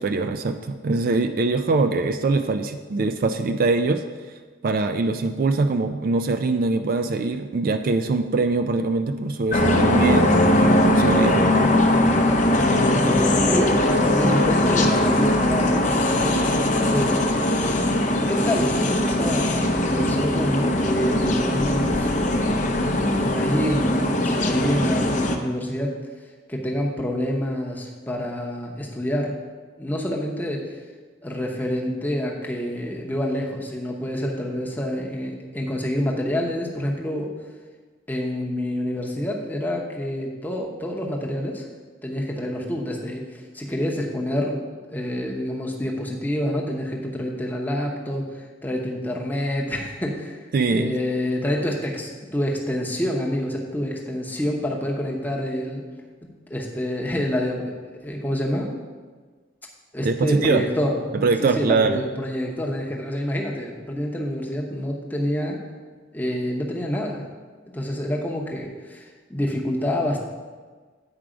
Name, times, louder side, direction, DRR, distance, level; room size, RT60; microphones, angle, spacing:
voice 1, 0.0-4.0 4.6-11.4 50.5-50.9 60.0-60.6 61.1-62.0, right 3 dB, 50° right, 8 dB, 0.3 m, -22 dB
sound 1, 9.5-25.4, left 1 dB, 40° left, 0.6 m, -20 dB
voice 2, 12.5-16.6 16.9-17.2 18.3-22.1 23.3-26.0 26.5-29.4 29.8-30.8 31.2-37.3 38.1-41.7 42.0-44.6 44.9-55.8 56.5-57.7 58.0-58.7 59.9-61.0 61.4-65.6 66.1-67.2 67.7-70.2, equal, 10° left, -1 dB, 0.8 m, -27 dB
8.9 x 4.8 x 5.0 m, 1.5 s
head